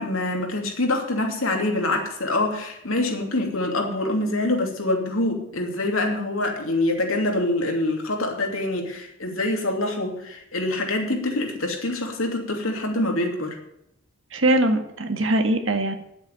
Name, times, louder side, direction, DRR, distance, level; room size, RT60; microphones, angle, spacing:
voice 1, 0.0-13.6, left 2 dB, 90° left, 2 dB, 2.8 m, -25 dB
voice 2, 14.3-15.9, right 1 dB, 70° right, 6 dB, 1.7 m, -21 dB
10.0 x 8.1 x 9.1 m, 0.78 s
head